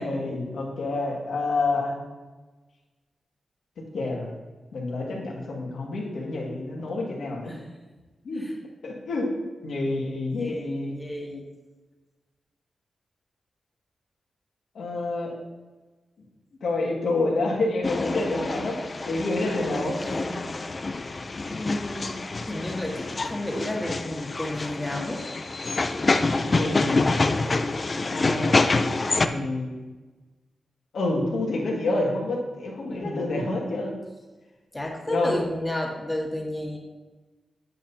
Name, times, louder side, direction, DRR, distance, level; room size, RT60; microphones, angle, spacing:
voice 1, 0.0-2.0 3.9-4.3 4.7-7.5 8.2-8.5 8.8-9.3 9.6-11.0 14.7-15.3 16.6-18.8 19.1-20.0 26.5-27.1 28.1-28.5 29.2-29.8 30.9-34.0 35.1-35.3, left 2 dB, 80° left, -2 dB, 2.1 m, -28 dB
voice 2, 10.4-11.4 19.7-20.6 21.5-22.2 22.5-25.2 32.9-33.2 34.7-36.8, left 1 dB, 15° left, 0 dB, 1.7 m, -32 dB
sound 1, 17.8-29.3, left 3 dB, 40° left, 0.5 m, -26 dB
8.9 x 8.1 x 2.8 m, 1.2 s
cardioid pair, 75°, 0 cm